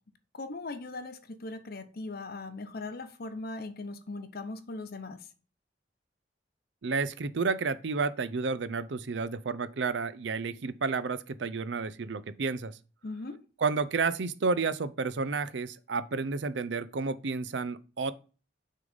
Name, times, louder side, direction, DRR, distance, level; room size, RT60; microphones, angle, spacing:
voice 1, 0.3-5.3 13.0-13.4, left 2 dB, 55° left, 0.8 m, -39 dB
voice 2, 6.8-12.7 13.6-18.1, right 4 dB, 70° right, 0.5 m, -31 dB
6.4 x 3.9 x 5.2 m
head